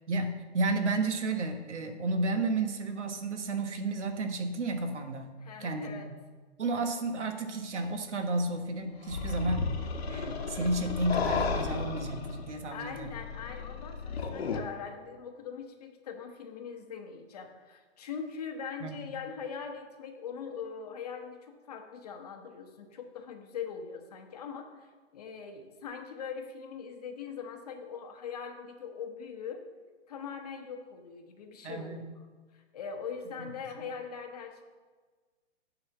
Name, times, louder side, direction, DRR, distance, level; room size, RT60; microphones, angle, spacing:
voice 1, 0.1-5.3 5.6-6.2 6.6-9.6 10.1-13.1 18.8-19.1 31.6-32.0, right 2 dB, 75° right, 6 dB, 1.3 m, -32 dB
voice 2, 5.4-6.1 12.7-29.6 30.1-32.2 32.5-34.6, left 6 dB, 35° left, 4 dB, 0.9 m, -41 dB
sound 1, 9.1-14.6, left 4 dB, 60° left, 1.1 m, -33 dB
9.4 x 4.1 x 6.8 m, 1.4 s
hypercardioid pair, 160°, 35 cm